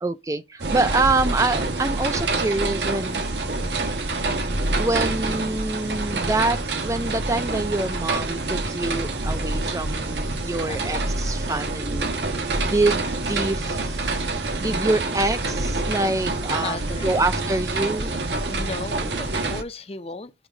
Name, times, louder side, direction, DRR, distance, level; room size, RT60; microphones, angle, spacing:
voice 1, 0.0-3.2 4.8-12.1 12.6-18.1, right 2 dB, 20° right, 0.4 m, -26 dB
sound 1, 0.6-19.6, right 2 dB, 80° right, 1.2 m, -26 dB
voice 2, 10.7-11.0 11.3-11.4 16.6-17.2 18.5-20.5, left 3 dB, 35° left, 0.6 m, -35 dB
8.0 x 3.6 x 4.9 m
head